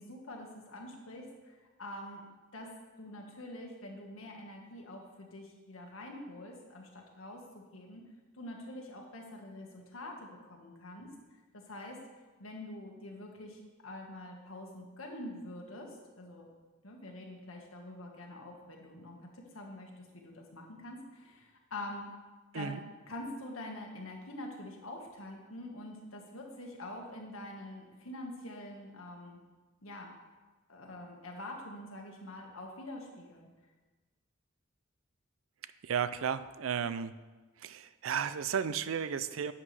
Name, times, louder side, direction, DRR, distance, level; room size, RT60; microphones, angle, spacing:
voice 1, 0.0-2.2 2.5-2.7 3.0-8.0 8.4-11.1 11.5-12.0 12.4-16.5 16.8-22.0 22.5-22.8 23.1-29.4 29.8-30.1 30.7-33.5, left 1 dB, 85° left, 1 dB, 1.6 m, -45 dB
voice 2, 35.8-37.2 37.6-39.5, right 7 dB, 75° right, 13 dB, 0.4 m, -34 dB
11.0 x 7.6 x 3.3 m, 1.2 s
head